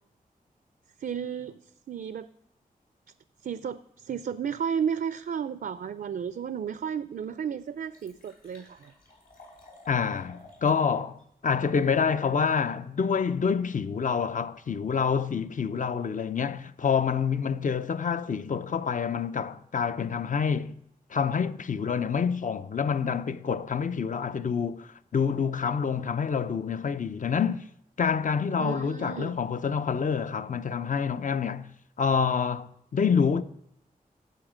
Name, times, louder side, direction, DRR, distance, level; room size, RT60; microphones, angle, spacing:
voice 1, 1.0-1.6 1.9-2.3 3.4-8.9 28.6-29.3, right 7 dB, 80° right, 0.4 m, -33 dB
Liquid, 6.7-6.8 7.3-7.4 7.6-10.8 11.2-11.3, left 2 dB, 90° left, 4.8 m, -53 dB
voice 2, 9.9-20.8 21.1-27.6 28.0-31.7 32.0-33.4, left 6 dB, 60° left, 0.6 m, -27 dB
15.0 x 8.0 x 5.1 m
wide cardioid pair, 80°, 15 cm